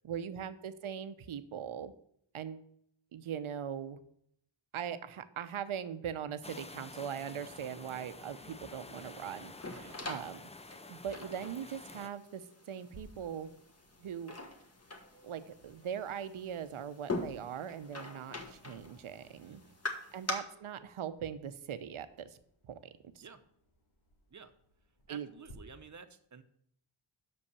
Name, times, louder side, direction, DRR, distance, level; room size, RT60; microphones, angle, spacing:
voice 1, 0.0-1.9 2.3-2.7 3.1-4.0 4.7-10.4 10.9-13.5 14.0-14.3 15.2-19.6 20.1-22.4 22.7-22.8 23.1-23.2 25.1-25.3, right 8 dB, 80° right, 12 dB, 0.7 m, -40 dB
sound 1, 6.4-12.1, left 3 dB, 15° left, 0.4 m, -50 dB
sound 2, 8.9-20.3, left 3 dB, 30° left, 1.4 m, -44 dB
sound 3, 12.9-25.5, equal, 80° left, 1.8 m, -64 dB
voice 2, 19.4-19.8 23.1-23.4 24.3-24.5 25.1-26.4, right 5 dB, 35° right, 10 dB, 0.8 m, -52 dB
6.3 x 5.4 x 6.9 m, 0.70 s
wide cardioid pair, 75°, 48 cm